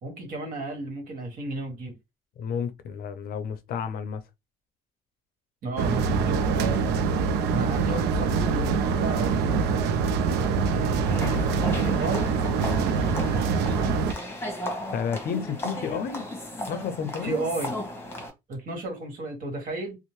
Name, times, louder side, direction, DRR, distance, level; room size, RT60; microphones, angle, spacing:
voice 1, 0.0-2.0 5.6-7.1 7.5-9.7 10.6-12.3 12.8-14.0 17.2-17.7 18.5-20.0, right 2 dB, 55° right, 1.4 m, -34 dB
voice 2, 2.4-4.2 14.9-16.3 16.7-17.4, left 7 dB, 60° left, 0.5 m, -31 dB
sound 1, 5.8-14.1, right 5 dB, 80° right, 0.4 m, -24 dB
sound 2, 11.0-18.3, left 1 dB, 15° left, 1.0 m, -35 dB
2.7 x 2.0 x 3.0 m
cardioid pair, 110°, 17 cm